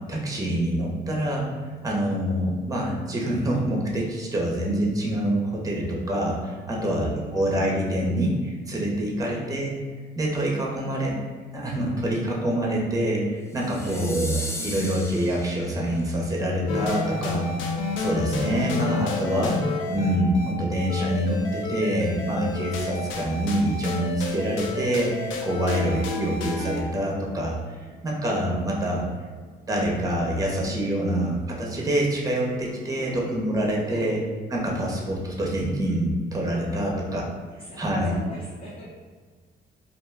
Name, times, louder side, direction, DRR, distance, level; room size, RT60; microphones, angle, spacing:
voice 1, 0.1-1.5 1.8-9.7 10.2-11.2 11.5-17.7 18.0-19.5 19.9-27.8 28.0-29.0 29.7-34.2 34.5-37.2 37.8-38.1, right 1 dB, 15° right, -2 dB, 0.7 m, -26 dB
voice 2, 6.8-7.6 9.2-9.6 13.8-14.1 33.0-33.2 33.9-34.1 36.7-37.2 37.6-38.8, equal, 40° left, -9 dB, 0.8 m, -41 dB
sound 1, 13.5-16.0, left 1 dB, 15° left, 0.3 m, -36 dB
sound 2, 16.7-26.8, left 3 dB, 75° left, 0.5 m, -30 dB
2.4 x 2.1 x 3.4 m, 1.5 s
cardioid pair, 90°, 20 cm